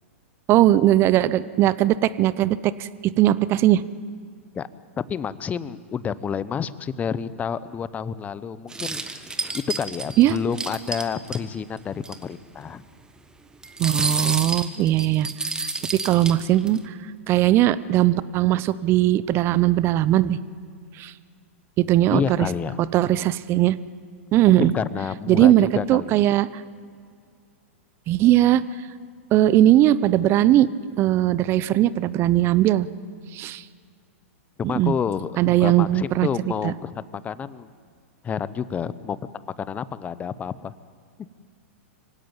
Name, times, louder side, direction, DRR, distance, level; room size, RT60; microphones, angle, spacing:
voice 1, 0.5-3.8 10.2-10.4 13.8-15.3 15.6-16.9 17.3-20.4 21.0-21.1 21.8-22.4 22.9-23.8 24.3-24.7 25.3-26.5 28.1-28.6 29.3-30.7 31.0-32.9 33.3-33.6 34.7-34.9 35.4-36.3 36.6-36.7, right 13 dB, 35° right, 17 dB, 0.8 m, -19 dB
voice 2, 5.1-9.3 9.5-12.8 22.1-22.8 24.6-26.2 34.6-37.7 38.2-39.2 39.6-40.7, left 7 dB, 20° left, 16 dB, 0.8 m, -29 dB
sound 1, 8.7-11.4 11.8-11.9 12.0-12.2 13.6-16.8, right 3 dB, 10° right, 1.4 m, -29 dB
25.0 x 16.5 x 9.0 m, 2.1 s
hypercardioid pair, 110°, 7 cm